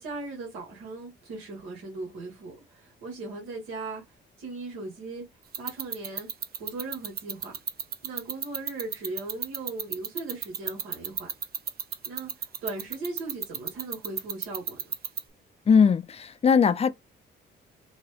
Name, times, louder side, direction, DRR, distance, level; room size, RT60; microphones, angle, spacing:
voice 1, 0.0-4.0 4.4-5.2 5.6-6.3 6.6-7.6 8.0-11.3 12.0-14.9, right 3 dB, 85° right, 1.6 m, -38 dB
watch-ticking-contact-mic, 5.5-15.2, right 8 dB, 50° right, 0.6 m, -31 dB
voice 2, 15.7-16.9, left 6 dB, 30° left, 0.5 m, -20 dB
3.9 x 2.2 x 3.2 m
cardioid pair, 90°, 20 cm